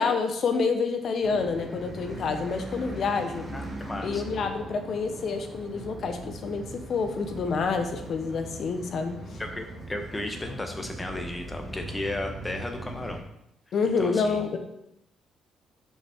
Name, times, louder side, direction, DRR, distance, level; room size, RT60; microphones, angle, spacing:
voice 1, 0.0-3.5 4.0-9.4 13.7-14.6, left 5 dB, 60° left, 6 dB, 0.9 m, -28 dB
sound 1, 1.2-13.2, right 1 dB, 5° right, 2.1 m, -40 dB
voice 2, 3.5-4.2 9.4-13.2 14.0-14.4, left 1 dB, 15° left, 3 dB, 1.1 m, -34 dB
5.7 x 5.6 x 3.6 m, 0.80 s
cardioid pair, 80°, 0 cm